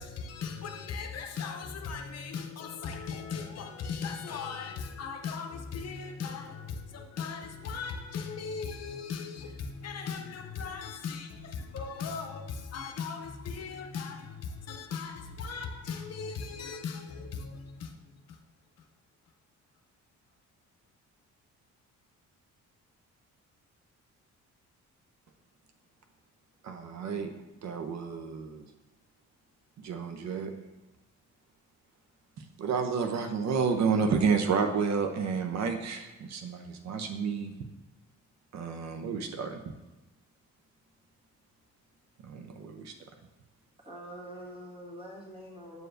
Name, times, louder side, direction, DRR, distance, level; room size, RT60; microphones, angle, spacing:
voice 1, 0.0-18.4 18.8-18.9, left 5 dB, 55° left, 0.7 m, -38 dB
voice 2, 26.6-27.3 27.6-28.7 29.8-30.5 32.6-37.5 38.5-39.7 42.2-42.9, right 5 dB, 65° right, 0.7 m, -30 dB
voice 3, 43.8-45.9, equal, 20° right, 1.6 m, -45 dB
7.9 x 4.7 x 2.6 m
cardioid pair, 90°, 30 cm